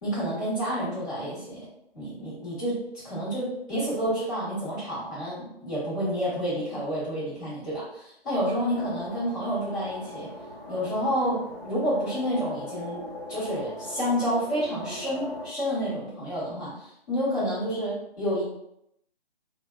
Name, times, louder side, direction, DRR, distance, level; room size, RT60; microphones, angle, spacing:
voice 1, 0.0-1.7 1.9-10.3 10.7-13.0 13.3-18.4, equal, 20° left, -12 dB, 1.1 m, -29 dB
sound 1, 8.7-15.5, left 1 dB, 45° left, 0.9 m, -40 dB
2.5 x 2.2 x 2.3 m, 0.78 s
figure-of-eight pair, 155°, 32 cm